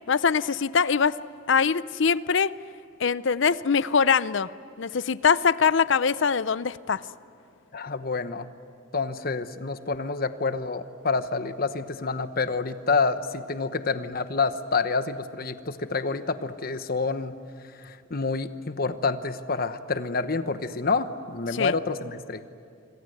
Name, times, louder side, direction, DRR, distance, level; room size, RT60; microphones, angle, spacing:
voice 1, 0.1-1.2 1.5-2.5 3.0-4.5 4.8-7.0 21.5-21.7, left 6 dB, 65° left, 17 dB, 0.6 m, -23 dB
voice 2, 7.7-8.5 8.9-17.4 17.8-22.4, left 4 dB, 45° left, 11 dB, 1.0 m, -28 dB
26.5 x 25.0 x 8.0 m, 2.3 s
head